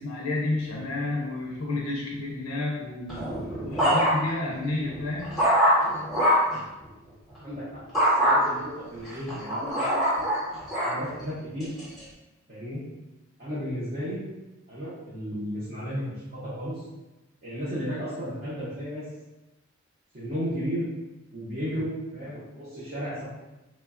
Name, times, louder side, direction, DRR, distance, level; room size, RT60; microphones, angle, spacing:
voice 1, 0.0-3.2 3.6-5.4, left 2 dB, 90° left, -2 dB, 0.5 m, -30 dB
sound 1, 3.1-4.4 4.9-6.6 7.9-8.4 9.0-11.0 11.6-12.0, equal, ahead, 0.8 m, -23 dB
voice 2, 7.4-7.8 8.1-10.0 10.8-11.7 12.5-12.8 13.4-14.2 14.7-16.0 16.3-16.8 17.4-19.0 20.1-20.9 21.3-23.3, equal, 45° right, -10 dB, 0.7 m, -33 dB
3.0 x 2.1 x 2.4 m, 1.0 s
head